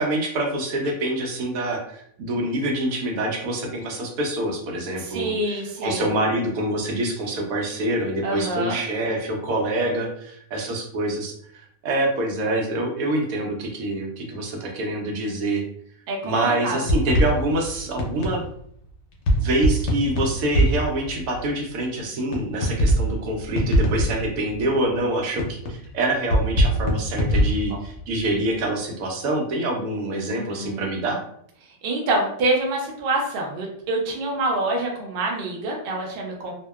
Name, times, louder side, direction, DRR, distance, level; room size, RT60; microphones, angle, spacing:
voice 1, 0.0-11.3 11.8-15.6 16.2-18.4 19.4-31.2, right 1 dB, 80° right, 1 dB, 1.1 m, -26 dB
voice 2, 5.0-6.1 8.2-8.8 16.1-16.8 30.3-30.9 31.8-36.5, right 2 dB, 60° right, 0 dB, 0.6 m, -26 dB
sound 1, 16.9-18.5 19.3-21.5 22.3-22.4 22.6-24.6 25.4-25.9 26.3-28.2, equal, 65° left, 0.8 m, -21 dB
2.7 x 2.1 x 2.2 m, 0.67 s
omnidirectional pair, 1.5 m